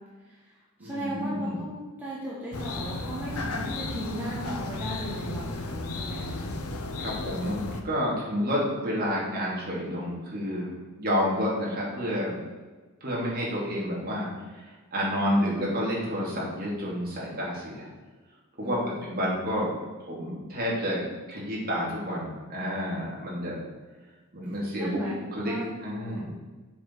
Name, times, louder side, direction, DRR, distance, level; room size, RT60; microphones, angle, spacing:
voice 1, 0.3-6.5 18.6-19.0 24.8-25.1 25.4-25.7 26.0-26.2, equal, 10° right, -7 dB, 1.4 m, -36 dB
voice 2, 0.8-1.6 7.0-10.7 11.0-12.4 13.0-14.3 14.5-14.6 14.9-17.9 18.6-19.7 20.0-21.0 21.3-23.6 24.3-25.0 25.3-25.5 25.8-26.3, equal, 45° right, -5 dB, 2.8 m, -29 dB
sound 1, 2.5-7.8, left 2 dB, 75° left, 0.9 m, -34 dB
7.2 x 6.6 x 4.8 m, 1.3 s
head